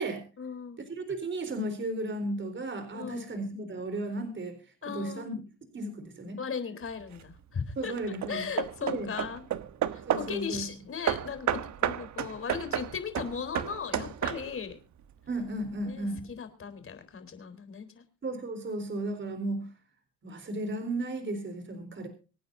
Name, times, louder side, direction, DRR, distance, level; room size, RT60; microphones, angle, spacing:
voice 1, 0.4-0.8 2.9-3.3 4.8-5.4 6.4-7.9 8.3-9.4 9.9-14.8 15.9-17.9, left 6 dB, 45° left, 9 dB, 3.9 m, -37 dB
voice 2, 0.9-4.6 4.9-5.4 5.7-6.4 7.8-8.4 8.8-9.1 10.1-10.6 15.3-16.3 18.2-19.7 20.2-22.1, right 2 dB, 40° right, 8 dB, 3.9 m, -34 dB
Hammer / Wood, 6.9-7.3 8.0-10.4 11.1-14.7, right 10 dB, 70° right, 1.2 m, -32 dB
25.5 x 9.7 x 2.7 m, 0.33 s
cardioid pair, 90°, 30 cm